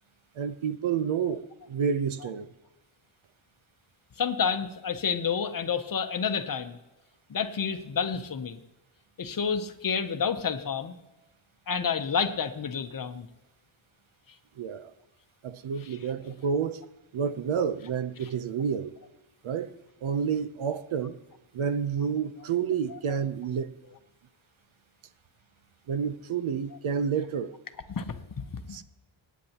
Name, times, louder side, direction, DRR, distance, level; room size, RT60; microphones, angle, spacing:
voice 1, 0.4-2.5 14.6-14.9 15.4-16.8 17.1-18.9 19.4-19.7 20.0-21.2 21.5-23.8 25.9-27.5 28.7-28.8, right 7 dB, 80° right, 0.8 m, -29 dB
voice 2, 4.2-6.8 7.3-8.6 9.2-11.0 11.7-13.3 22.9-23.0 27.9-28.2 28.7-28.8, left 6 dB, 45° left, 0.8 m, -29 dB
26.5 x 9.3 x 2.9 m
wide cardioid pair, 175°, 48 cm